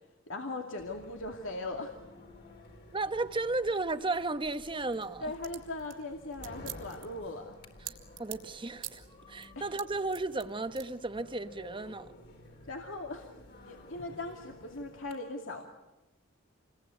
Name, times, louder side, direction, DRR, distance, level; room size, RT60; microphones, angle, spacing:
voice 1, 0.3-1.9 5.2-7.6 9.6-9.7 12.7-13.3 13.7-15.7, left 2 dB, 80° left, 2.4 m, -39 dB
sound 1, 0.8-15.1, left 1 dB, 55° left, 4.1 m, -52 dB
voice 2, 2.9-5.3 7.8-12.1, right 3 dB, 25° right, 1.1 m, -34 dB
sound 2, 4.7-8.5 8.8-9.1 9.4-10.4 10.8-10.9, right 15 dB, 75° right, 3.5 m, -44 dB
28.5 x 21.5 x 9.4 m
head